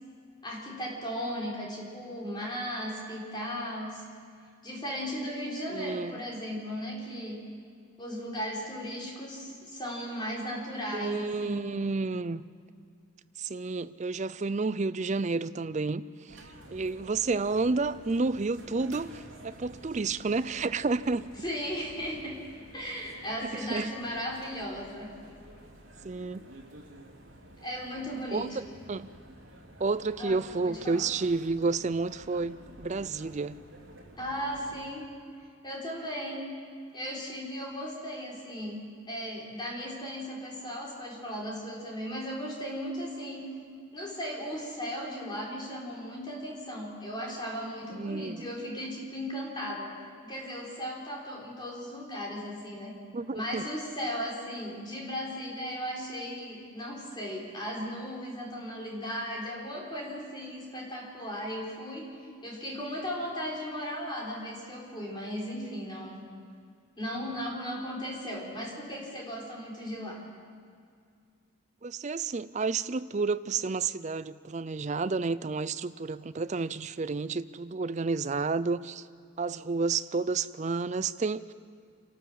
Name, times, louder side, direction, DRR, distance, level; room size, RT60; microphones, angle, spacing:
voice 1, 0.4-4.0 4.6-7.4 8.0-11.7 21.4-22.3 22.7-25.1 27.6-28.6 30.2-31.1 34.2-35.0 35.6-36.5 36.9-43.5 43.9-49.9 50.2-53.0 53.3-62.1 62.4-66.3 67.0-70.2, equal, 20° left, 4.0 m, -36 dB
voice 2, 5.7-6.1 10.9-12.4 13.4-16.4 16.7-21.3 23.4-23.9 26.0-26.5 28.3-29.1 29.8-33.6 47.9-48.5 53.1-53.6 71.8-79.1 79.4-81.4, right 4 dB, 35° right, 0.4 m, -30 dB
sound 1, 16.3-34.9, right 1 dB, 65° right, 3.0 m, -51 dB
28.0 x 12.5 x 7.5 m
head